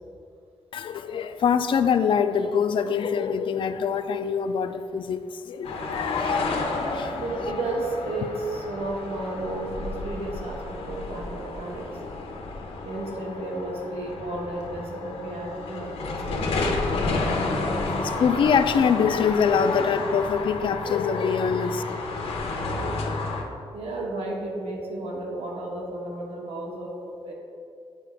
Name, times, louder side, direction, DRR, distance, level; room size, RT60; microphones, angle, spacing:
voice 1, 0.7-6.6 6.9-7.2 7.5-7.6 18.0-21.8, left 6 dB, 60° left, 10 dB, 0.4 m, -24 dB
sound 1, 5.6-23.4, left 3 dB, 80° left, 0.8 m, -31 dB
voice 2, 6.9-11.9 12.8-16.7 23.7-27.3, right 2 dB, 85° right, -1 dB, 1.3 m, -33 dB
9.8 x 4.7 x 3.5 m, 2.5 s
wide cardioid pair, 160°, 10 cm